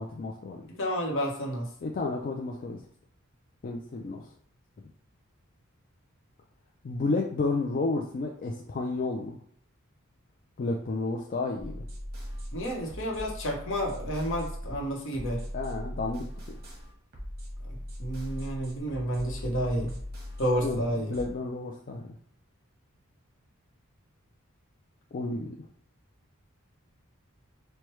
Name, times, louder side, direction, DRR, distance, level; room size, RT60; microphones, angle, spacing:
voice 1, 0.0-0.7 1.8-2.8 3.6-4.2 6.8-9.4 10.6-11.8 15.5-16.3 20.6-20.8 21.1-22.1 25.1-25.6, left 3 dB, 40° left, -1 dB, 0.3 m, -31 dB
voice 2, 0.7-1.7 12.5-15.4 17.7-19.9 20.4-21.1, equal, 65° left, 0 dB, 0.9 m, -30 dB
sound 1, 11.6-21.3, equal, 50° right, 1.0 m, -39 dB
4.5 x 2.2 x 3.1 m, 0.63 s
head